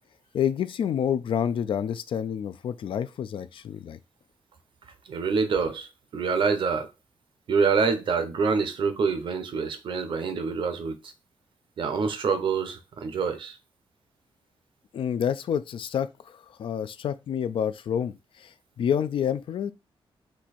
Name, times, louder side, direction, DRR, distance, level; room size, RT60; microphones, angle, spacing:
voice 1, 0.3-4.0 14.9-19.7, left 8 dB, 65° left, 0.4 m, -28 dB
voice 2, 5.0-6.9 7.5-11.1 11.8-13.6, right 5 dB, 60° right, 0.8 m, -26 dB
4.5 x 2.7 x 4.1 m
wide cardioid pair, 180°, 10 cm